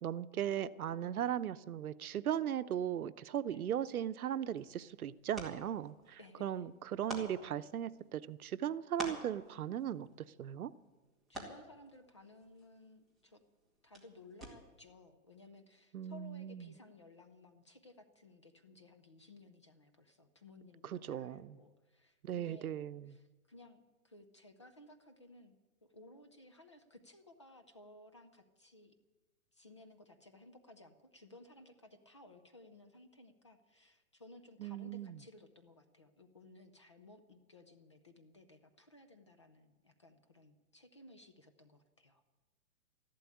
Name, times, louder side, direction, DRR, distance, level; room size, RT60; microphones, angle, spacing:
voice 1, 0.0-10.7 15.9-16.7 20.8-21.6 22.2-23.2 34.6-35.2, right 10 dB, 85° right, 14 dB, 0.8 m, -38 dB
sound 1, 4.2-14.9, right 2 dB, ahead, 1.9 m, -51 dB
voice 2, 6.2-6.7 11.3-13.4 13.8-22.8 23.1-25.5 25.8-28.9 29.5-42.2, left 2 dB, 20° left, 7 dB, 0.4 m, -58 dB
14.0 x 12.0 x 8.5 m, 1.2 s
hypercardioid pair, 165°, 42 cm